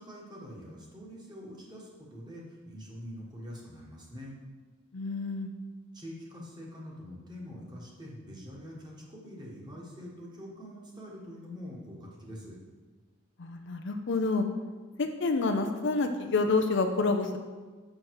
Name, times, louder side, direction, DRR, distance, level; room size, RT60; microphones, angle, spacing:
voice 1, 0.0-4.3 5.9-12.6, equal, 20° right, -3 dB, 1.5 m, -45 dB
voice 2, 4.9-5.5 13.4-14.4 15.0-17.4, left 3 dB, 60° left, 6 dB, 0.5 m, -28 dB
6.4 x 5.8 x 4.7 m, 1.4 s
head